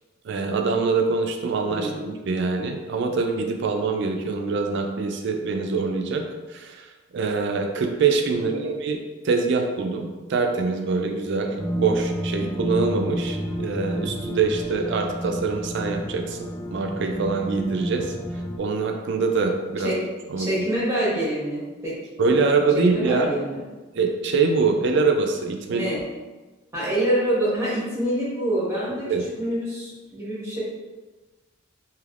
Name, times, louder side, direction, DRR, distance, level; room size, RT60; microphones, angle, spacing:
voice 1, 0.2-6.2 6.5-6.9 7.1-9.0 9.2-18.1 18.6-19.9 20.3-20.6 22.2-23.4 23.9-25.9 29.1-29.3, right 4 dB, 60° right, 4 dB, 0.4 m, -24 dB
voice 2, 1.7-2.0 8.3-8.6 19.8-20.0 20.4-22.3 22.9-23.6 25.7-26.0 26.7-29.1 29.4-30.6, right 1 dB, 15° right, -8 dB, 1.1 m, -26 dB
sound 1, 11.6-18.6, equal, 15° left, 0.4 m, -30 dB
3.3 x 2.8 x 2.4 m, 1.2 s
head